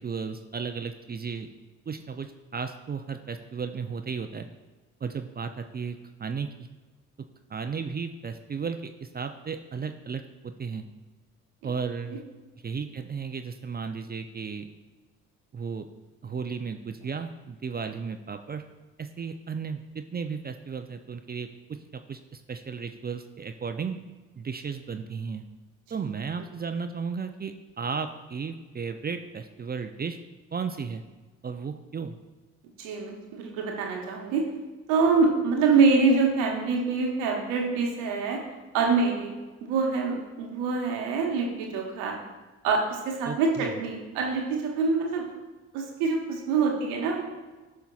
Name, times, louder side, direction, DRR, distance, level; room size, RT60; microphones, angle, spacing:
voice 1, 0.0-1.5 1.9-4.5 5.0-6.5 7.5-10.8 11.6-12.2 12.6-14.7 15.5-15.9 16.2-18.6 19.0-21.5 21.9-24.0 24.4-25.4 25.9-30.2 30.5-31.0 31.4-32.2 43.2-43.8, right 5 dB, 25° right, 7 dB, 0.5 m, -34 dB
voice 2, 32.8-34.4 34.9-38.4 38.7-39.3 39.6-42.1 42.6-45.3 45.7-47.2, right 4 dB, 75° right, 0 dB, 1.3 m, -25 dB
17.0 x 5.7 x 2.4 m, 1.2 s
figure-of-eight pair, 40°, 38 cm